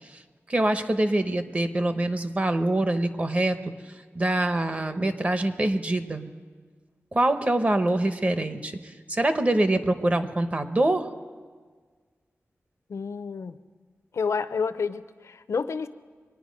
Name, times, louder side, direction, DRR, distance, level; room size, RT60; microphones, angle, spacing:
voice 1, 0.5-3.6 4.1-6.3 7.1-11.1, right 1 dB, 30° right, 9 dB, 0.8 m, -24 dB
voice 2, 12.9-13.6 14.1-15.9, left 5 dB, 85° left, 12 dB, 0.5 m, -29 dB
24.0 x 9.9 x 5.2 m, 1.5 s
wide cardioid pair, 110°, 5 cm